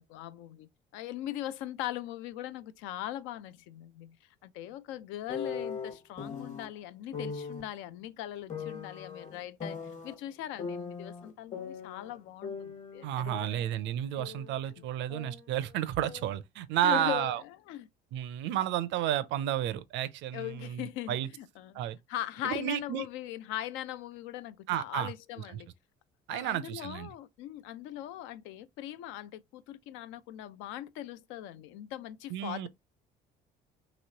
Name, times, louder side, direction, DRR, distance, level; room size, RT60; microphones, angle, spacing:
voice 1, 0.0-4.2 4.4-9.8 10.0-13.6 14.0-14.1 16.8-17.9 20.3-21.8 22.1-25.7 26.3-32.7, left 13 dB, 80° left, 0.4 m, -40 dB
sound 1, 5.3-6.7 7.1-7.6 8.5-10.1 10.6-12.2 12.4-14.6 14.8-16.4, left 5 dB, 40° left, 1.3 m, -40 dB
voice 2, 13.0-17.4 18.1-21.3 21.7-22.0 22.4-23.1 24.7-25.1 25.5-25.6 26.3-27.1 32.3-32.7, right 12 dB, 70° right, 0.4 m, -32 dB
3.0 x 2.9 x 2.7 m
supercardioid pair, 70°, 20 cm